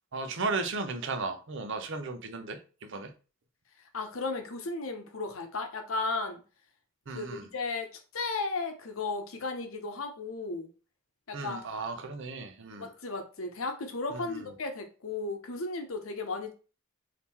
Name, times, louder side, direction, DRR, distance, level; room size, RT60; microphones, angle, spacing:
voice 1, 0.1-3.1 7.1-7.5 11.3-12.9 14.1-14.4, right 3 dB, 65° right, 0.7 m, -35 dB
voice 2, 3.9-6.4 7.1-10.7 11.3-11.7 12.8-16.5, left 3 dB, 80° left, 0.9 m, -35 dB
3.6 x 2.9 x 4.3 m
head